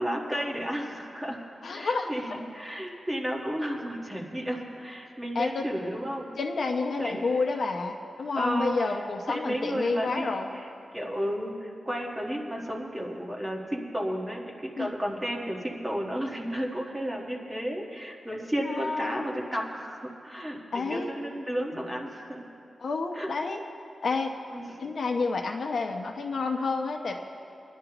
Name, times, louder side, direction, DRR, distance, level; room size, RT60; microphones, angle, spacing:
voice 1, 0.0-1.4 1.7-6.3 7.0-7.4 8.4-9.0 9.3-10.7 10.9-22.5 23.1-23.3 24.5-24.9, equal, 10° right, -1 dB, 1.5 m, -33 dB
voice 2, 1.6-2.1 5.3-5.6 6.4-10.5 14.8-14.9 18.6-19.4 20.7-21.1 21.7-21.8 22.8-23.6 24.0-24.3 24.8-27.1, left 4 dB, 60° left, 3 dB, 0.8 m, -29 dB
24.0 x 11.0 x 3.0 m, 2.6 s
wide cardioid pair, 150°, 0 cm